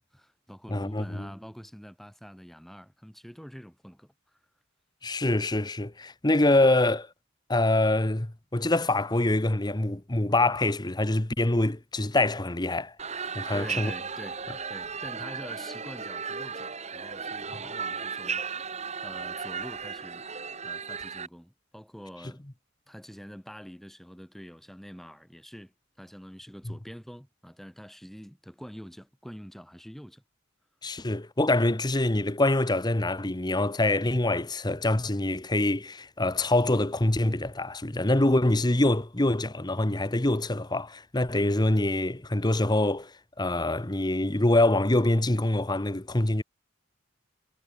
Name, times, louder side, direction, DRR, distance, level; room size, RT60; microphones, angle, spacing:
voice 1, 0.0-4.4 13.5-20.2 20.6-22.4 22.9-30.2, equal, ahead, 2.5 m, -46 dB
voice 2, 0.7-1.3 5.0-7.1 7.5-12.9 13.3-13.9 30.8-43.1 43.4-46.4, left 2 dB, 20° left, 1.1 m, -25 dB
sound 1, 13.0-21.3, right 6 dB, 35° right, 2.7 m, -35 dB
head